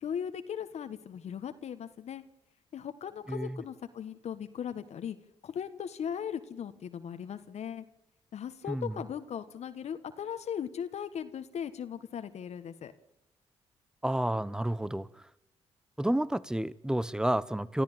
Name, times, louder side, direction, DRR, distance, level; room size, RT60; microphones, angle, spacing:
voice 1, 0.0-2.2 2.7-5.2 5.4-7.8 8.3-12.9, left 8 dB, 65° left, 1.5 m, -38 dB
voice 2, 3.3-3.6 8.7-9.0 14.0-15.1 16.0-17.8, right 1 dB, 5° right, 1.0 m, -30 dB
29.0 x 14.0 x 9.0 m
supercardioid pair, 55°, 12 cm